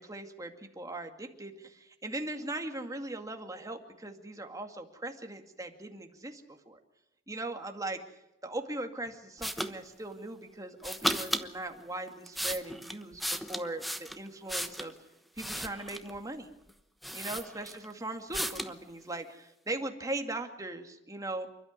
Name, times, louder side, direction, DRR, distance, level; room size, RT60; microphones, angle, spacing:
voice 1, 0.0-6.8 7.3-15.0 15.4-16.5 17.1-21.5, right 2 dB, 20° right, 5 dB, 2.2 m, -39 dB
sound 1, 9.4-9.7 10.8-11.5 12.1-14.9 15.4-16.2 16.7-16.8 17.0-17.9 18.3-18.7, equal, ahead, 1.1 m, -35 dB
28.5 x 12.0 x 9.6 m, 0.88 s
head